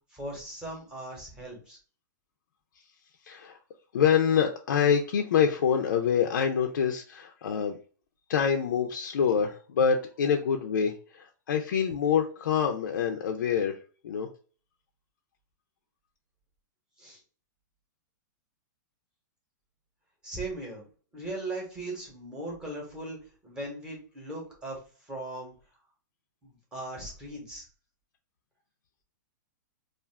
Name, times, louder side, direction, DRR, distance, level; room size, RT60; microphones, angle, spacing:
voice 1, 0.1-1.8 17.0-17.2 20.2-20.8 21.1-23.2 23.4-24.8 25.1-25.5 26.4-27.6, right 2 dB, 10° right, -2 dB, 0.9 m, -38 dB
voice 2, 3.3-3.6 3.9-7.8 8.3-13.7 14.0-14.3, left 7 dB, 90° left, 3 dB, 0.4 m, -26 dB
2.4 x 2.4 x 3.3 m, 0.39 s
hypercardioid pair, 165°, 10 cm